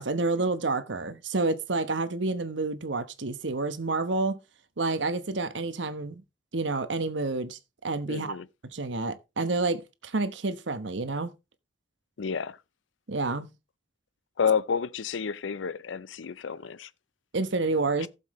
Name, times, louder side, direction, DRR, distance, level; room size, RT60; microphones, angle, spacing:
voice 1, 0.0-4.4 4.8-6.2 6.5-8.4 8.7-11.3 13.1-13.5 17.3-18.1, right 3 dB, 75° right, 1.1 m, -29 dB
voice 2, 8.1-8.5 12.2-12.6 14.4-16.9 18.0-18.1, left 6 dB, 85° left, 0.5 m, -30 dB
15.5 x 7.1 x 3.1 m
head